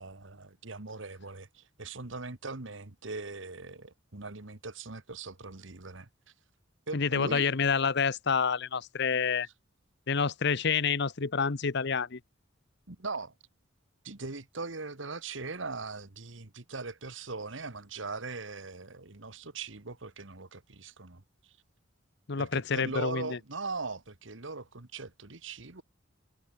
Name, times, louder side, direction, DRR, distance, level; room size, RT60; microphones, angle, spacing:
voice 1, 0.0-6.1 6.9-7.4 12.9-13.3 14.0-21.5 22.4-25.8, right 3 dB, 70° right, 1.8 m, -40 dB
voice 2, 6.9-9.5 10.1-12.2 22.3-23.4, left 5 dB, 60° left, 0.9 m, -28 dB
head